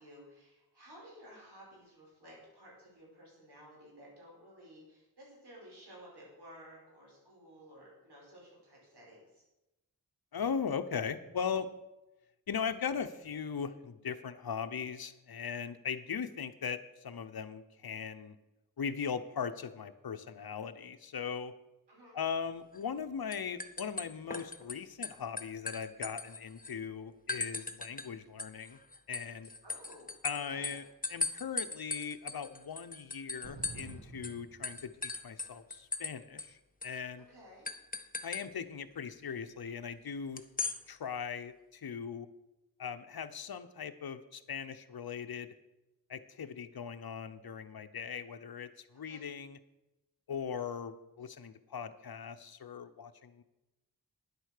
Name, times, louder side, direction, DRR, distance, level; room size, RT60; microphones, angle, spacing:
voice 1, 0.0-9.4 21.9-22.2 29.6-30.8 37.3-37.7 49.0-49.2, equal, 85° right, -4 dB, 5.0 m, -55 dB
voice 2, 10.3-11.7 12.5-18.3 18.8-21.5 22.1-28.8 29.1-29.5 30.2-30.8 31.1-37.3 38.2-40.4 40.9-42.3 42.8-45.5 46.1-49.6 50.3-53.4, left 6 dB, 65° left, 11 dB, 0.8 m, -39 dB
sound 1, 22.7-23.0 23.3-24.7 25.0-26.7 27.3-28.1 28.4-33.9 34.2-34.4 34.6-36.1 36.4-36.5 36.8-37.0 37.7-38.4 40.4-40.8, left 3 dB, 20° left, 0.8 m, -38 dB
sound 2, 33.4-35.4, right 3 dB, 45° right, 1.9 m, -49 dB
10.0 x 8.1 x 6.6 m, 1.0 s
wide cardioid pair, 75°, 39 cm